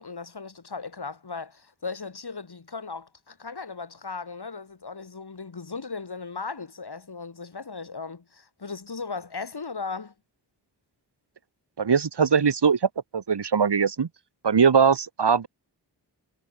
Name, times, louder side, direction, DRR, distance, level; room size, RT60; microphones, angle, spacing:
voice 1, 0.0-10.1, left 4 dB, 60° left, 6.2 m, -37 dB
voice 2, 11.8-12.8 13.1-14.1 14.4-15.5, right 6 dB, 65° right, 2.4 m, -21 dB
cardioid pair, 40°, 44 cm